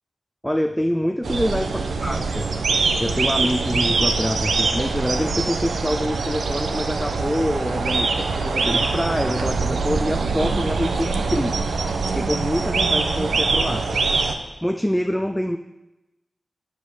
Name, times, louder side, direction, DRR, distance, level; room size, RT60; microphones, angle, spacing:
voice 1, 0.4-2.5 3.0-11.7 12.1-14.0 14.3-15.6, equal, 5° left, 6 dB, 0.3 m, -25 dB
sound 1, 1.2-14.4, right 4 dB, 90° right, 0.7 m, -23 dB
8.7 x 5.3 x 6.4 m, 1.0 s
wide cardioid pair, 135°, 0 cm